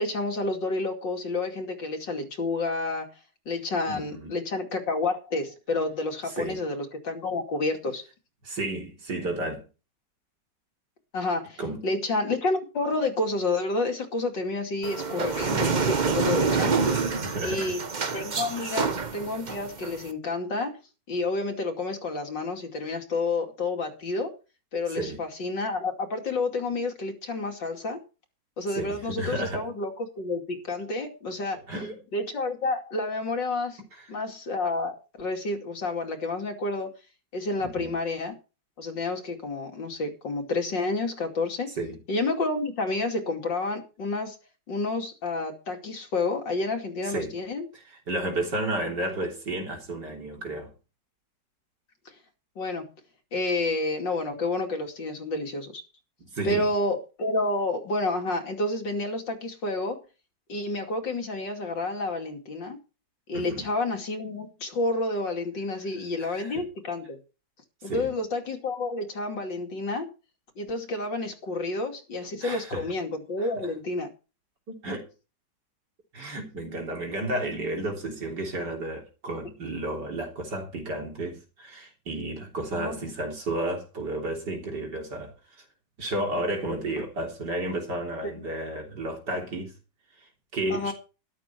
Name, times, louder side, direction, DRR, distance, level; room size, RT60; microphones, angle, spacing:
voice 1, 0.0-3.1 3.5-8.0 11.1-16.8 17.4-17.8 18.1-20.8 21.1-24.3 24.7-28.0 28.6-31.6 32.1-33.8 34.1-36.9 37.3-38.4 38.8-41.7 42.1-44.4 44.7-47.7 52.6-52.9 53.3-55.8 56.4-60.0 60.5-62.8 63.3-67.2 67.8-70.1 70.6-74.1 82.7-83.0 88.2-88.3 90.7-90.9, left 2 dB, 90° left, 3.3 m, -29 dB
voice 2, 3.9-4.3 6.3-6.6 8.4-9.6 11.6-11.9 16.8-17.7 18.6-18.7 24.9-25.2 28.7-29.7 31.7-32.0 37.6-37.9 41.8-42.0 47.0-47.3 47.7-50.7 56.3-56.7 63.3-63.7 66.2-66.6 67.8-68.1 72.4-72.9 73.4-73.7 74.7-75.0 76.1-85.6 86.0-89.8 90.2-90.9, right 1 dB, 70° right, 4.0 m, -32 dB
sound 1, 14.8-20.1, right 4 dB, 35° right, 0.8 m, -27 dB
13.0 x 11.5 x 4.5 m
omnidirectional pair, 1.9 m